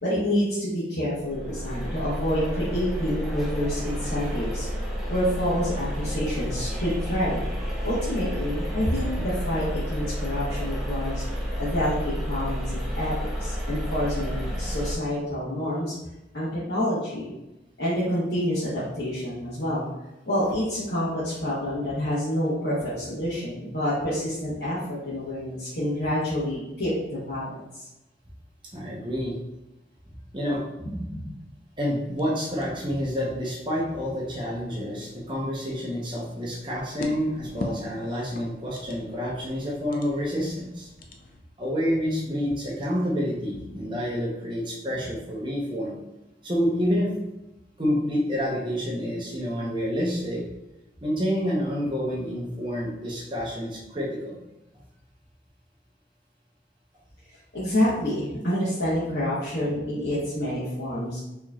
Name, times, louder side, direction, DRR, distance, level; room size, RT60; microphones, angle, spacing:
voice 1, 0.0-4.7 5.1-7.4 7.8-11.2 11.6-13.1 13.4-15.9 16.3-17.3 17.8-19.8 20.3-27.9 30.8-31.3 57.5-61.2, left 1 dB, 65° left, -11 dB, 1.1 m, -28 dB
sound 1, 1.2-15.0, equal, ahead, 0.6 m, -30 dB
voice 2, 28.7-29.4 30.3-30.6 31.8-40.9 41.6-46.0 46.4-47.1 47.8-50.4 51.0-54.4, equal, 25° right, -4 dB, 0.9 m, -28 dB
sound 2, 32.2-41.4, left 1 dB, 50° left, 0.4 m, -42 dB
4.5 x 3.1 x 2.4 m, 0.94 s
head